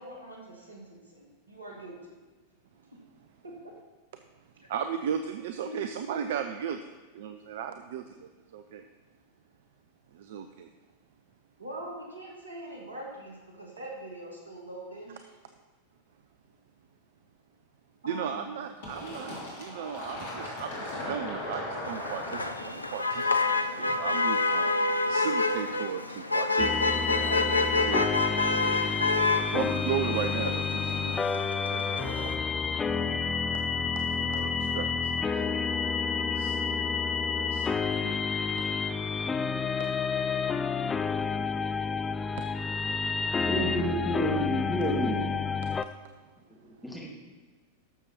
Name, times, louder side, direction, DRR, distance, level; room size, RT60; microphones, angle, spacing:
voice 1, 0.0-2.2 3.4-3.5 5.6-6.2 11.6-15.3 18.0-18.6, right 1 dB, 80° right, -1 dB, 2.4 m, -43 dB
voice 2, 4.7-6.8 7.1-8.8 10.1-10.7 18.0-23.3 23.8-24.8 25.1-31.1 31.7-32.4 32.8-33.2 33.5-33.6 34.2-35.4 36.3-38.8 42.7-43.5, right 8 dB, 55° right, 8 dB, 0.5 m, -37 dB
Fill (with liquid), 18.8-24.2, left 1 dB, 55° left, 3.1 m, -38 dB
Motor vehicle (road), 21.8-32.3, left 3 dB, 85° left, 0.6 m, -28 dB
sound 1, 26.6-45.8, left 5 dB, 15° left, 0.4 m, -29 dB
voice 3, 43.4-45.3 46.5-47.1, equal, ahead, -4 dB, 2.6 m, -30 dB
12.5 x 6.8 x 4.3 m, 1.4 s
figure-of-eight pair, 90°, 0 cm